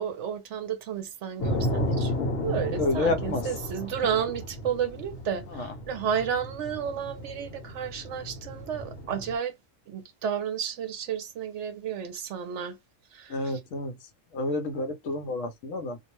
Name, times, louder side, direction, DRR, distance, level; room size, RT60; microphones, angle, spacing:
voice 1, 0.0-2.1 2.4-9.5 9.9-12.8 13.1-13.6, right 8 dB, 70° right, 0.8 m, -32 dB
sound 1, 1.4-9.3, left 1 dB, 55° left, 1.0 m, -33 dB
voice 2, 2.8-3.5 4.1-4.2 5.5-5.7 13.3-14.0 14.3-16.0, left 2 dB, 75° left, 1.0 m, -29 dB
2.5 x 2.1 x 2.9 m
omnidirectional pair, 1.3 m